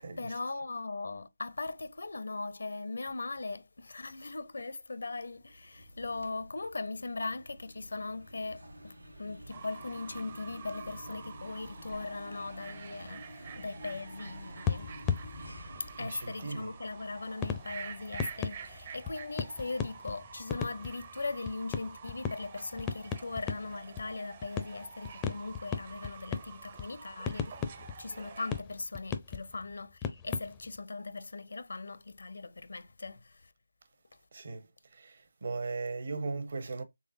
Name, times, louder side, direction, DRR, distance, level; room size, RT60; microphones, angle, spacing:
voice 1, 0.0-14.9 15.8-27.7 28.0-33.5, left 3 dB, 65° left, 0.6 m, -39 dB
sound 1, 5.3-19.8, equal, 85° right, 1.2 m, -51 dB
Fowl / Bird, 9.5-28.6, right 6 dB, 30° right, 0.6 m, -49 dB
sound 2, 13.5-13.6 14.7-16.3 17.4-30.8, left 6 dB, 15° left, 0.4 m, -37 dB
voice 2, 16.0-16.7 34.3-34.7 34.9-36.8, right 3 dB, 50° right, 0.9 m, -38 dB
3.9 x 3.3 x 2.7 m
figure-of-eight pair, 160°, 0 cm